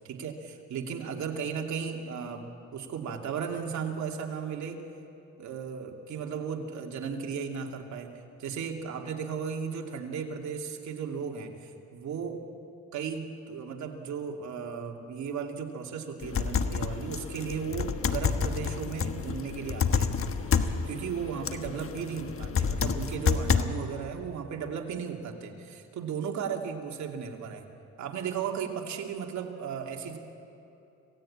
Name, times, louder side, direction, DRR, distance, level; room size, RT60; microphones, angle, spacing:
voice 1, 0.0-2.5 2.7-4.8 5.4-8.1 8.4-12.4 12.9-20.1 20.8-27.6 28.0-30.2, right 6 dB, 70° right, 2 dB, 2.5 m, -35 dB
sound 1, 16.2-23.6, left 6 dB, 45° left, 1.3 m, -29 dB
26.5 x 17.0 x 8.6 m, 2.9 s
cardioid pair, 90°, 30 cm